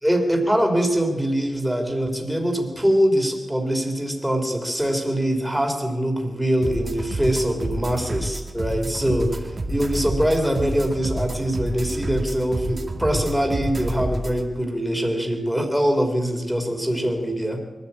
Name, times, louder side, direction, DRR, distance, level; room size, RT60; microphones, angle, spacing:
voice 1, 0.0-17.6, equal, ahead, 3 dB, 3.2 m, -23 dB
sound 1, 6.6-14.4, right 1 dB, 35° right, 2.1 m, -29 dB
23.5 x 13.0 x 8.6 m, 1.2 s
wide cardioid pair, 175°, 0 cm